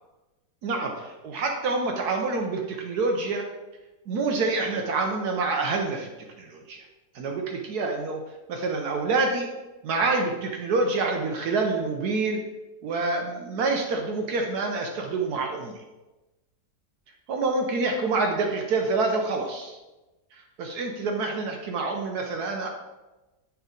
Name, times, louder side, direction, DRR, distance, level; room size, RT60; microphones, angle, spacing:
voice 1, 0.6-3.4 4.1-6.1 6.4-6.8 7.1-8.2 8.5-9.5 9.8-12.4 12.8-15.8 17.3-19.8 20.3-22.7, right 3 dB, 75° right, 2 dB, 1.3 m, -27 dB
7.1 x 4.6 x 3.9 m, 1.1 s
omnidirectional pair, 1.7 m